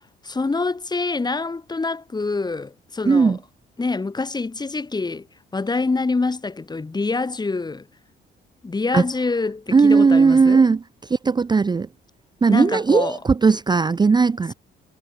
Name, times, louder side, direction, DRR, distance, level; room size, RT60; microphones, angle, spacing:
voice 1, 0.2-3.4 3.8-5.3 5.5-7.9 8.6-10.6 12.5-13.2, left 3 dB, 20° left, 1.4 m, -25 dB
voice 2, 3.0-3.4 8.9-9.0 9.7-10.8 11.1-11.9 12.4-14.5, right 4 dB, 20° right, 0.5 m, -17 dB
cardioid pair, 90°, 20 cm